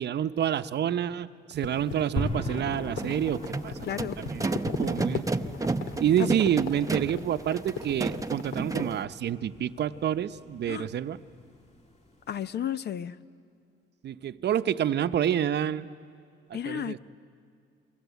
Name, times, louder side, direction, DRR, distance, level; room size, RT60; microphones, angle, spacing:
voice 1, 0.0-3.9 4.2-4.4 4.8-5.3 6.0-11.2 14.0-15.9 16.5-17.0, right 10 dB, 60° right, 11 dB, 0.8 m, -28 dB
sound 1, 1.5-8.9, left 6 dB, 80° left, 1.9 m, -38 dB
sound 2, 2.2-12.4, left 1 dB, 35° left, 2.7 m, -41 dB
sound 3, 3.0-9.0, right 3 dB, 15° right, 0.8 m, -32 dB
voice 2, 3.8-4.1 6.2-6.3 10.7-10.9 12.3-13.1 16.5-17.0, left 10 dB, 55° left, 14 dB, 0.8 m, -32 dB
29.0 x 23.5 x 8.2 m, 2.3 s
cardioid pair, 90°, 20 cm